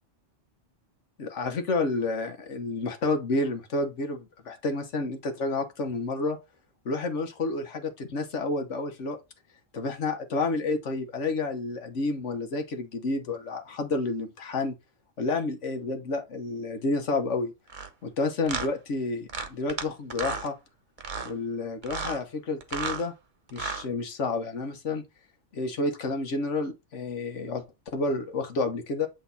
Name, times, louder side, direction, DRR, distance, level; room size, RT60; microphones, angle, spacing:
voice 1, 1.2-6.4 6.8-9.2 9.7-14.7 15.2-17.5 18.0-20.5 21.2-23.1 23.5-25.0 25.5-27.6 27.9-29.1, left 3 dB, 80° left, 1.5 m, -30 dB
sound 1, 17.7-17.9 18.5-18.7 19.3-19.8 20.1-20.5 21.0-21.3 21.8-22.2 22.6-23.0 23.5-23.9, right 5 dB, 45° right, 0.9 m, -33 dB
8.1 x 3.3 x 4.1 m
omnidirectional pair, 1.2 m